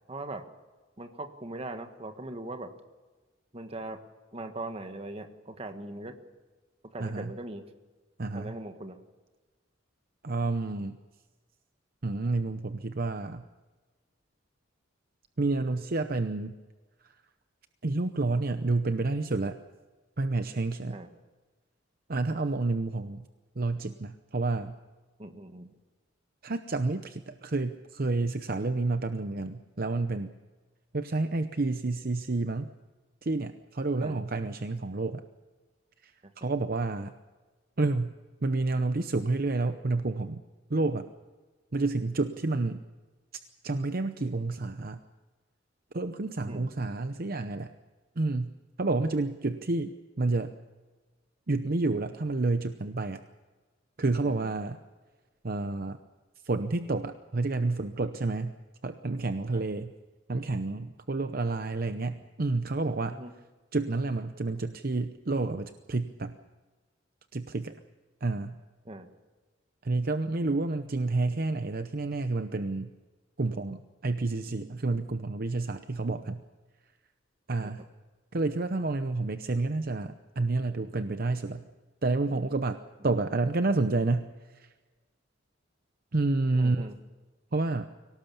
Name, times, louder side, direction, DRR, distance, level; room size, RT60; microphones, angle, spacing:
voice 1, 0.1-0.4 1.0-2.7 3.5-4.0 4.3-6.2 6.8-7.6 8.3-9.0 20.9-21.1 25.2-25.7 34.0-34.2 36.4-36.5 46.5-46.7 54.2-54.5 59.5-59.6 63.1-63.3 68.8-69.1 77.6-77.7 86.5-87.0, right 2 dB, 30° right, 7 dB, 1.6 m, -40 dB
voice 2, 7.0-7.3 8.2-8.5 10.2-11.0 12.0-13.5 15.4-16.6 17.0-17.1 17.8-19.6 20.2-21.0 22.1-23.3 23.6-24.8 26.4-30.3 30.9-32.7 33.2-35.2 36.0-37.1 37.8-40.4 40.7-41.1 41.7-42.8 43.6-45.0 45.9-47.7 48.2-50.5 51.5-53.2 54.0-54.8 55.4-56.0 56.4-58.6 58.8-59.9 60.3-63.2 63.7-66.4 67.3-67.8 68.2-68.6 69.8-72.9 73.4-76.4 77.5-77.8 78.3-81.6 82.0-84.7 86.1-86.9 87.5-87.8, right 3 dB, 50° right, 9 dB, 0.8 m, -29 dB
23.5 x 18.0 x 7.1 m, 1.3 s
head